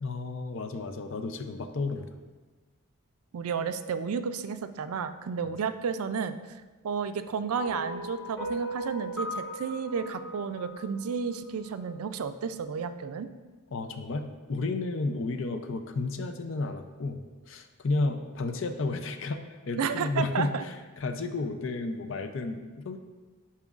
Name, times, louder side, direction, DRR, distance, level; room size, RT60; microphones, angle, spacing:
voice 1, 0.0-2.1 13.7-17.2 17.5-23.0, left 3 dB, 60° left, 7 dB, 0.5 m, -32 dB
voice 2, 3.3-6.4 6.8-13.3 19.8-20.6, right 6 dB, 80° right, 11 dB, 0.4 m, -32 dB
sound 1, 7.5-11.9, right 1 dB, 5° left, 1.3 m, -38 dB
10.5 x 4.3 x 2.4 m, 1.3 s
head